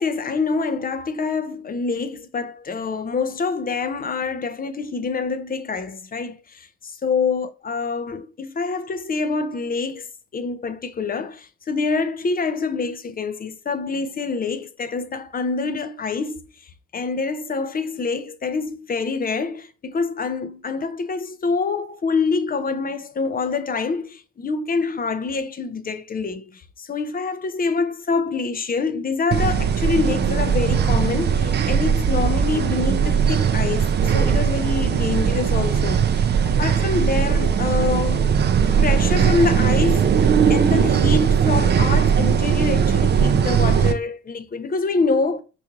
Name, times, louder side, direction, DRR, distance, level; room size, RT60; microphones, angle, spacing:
voice 1, 0.0-38.3 38.6-45.4, left 4 dB, 25° left, 0.5 m, -26 dB
sound 1, 29.3-43.9, right 7 dB, 30° right, 0.4 m, -19 dB
4.6 x 2.7 x 2.5 m
hypercardioid pair, 50°, 37 cm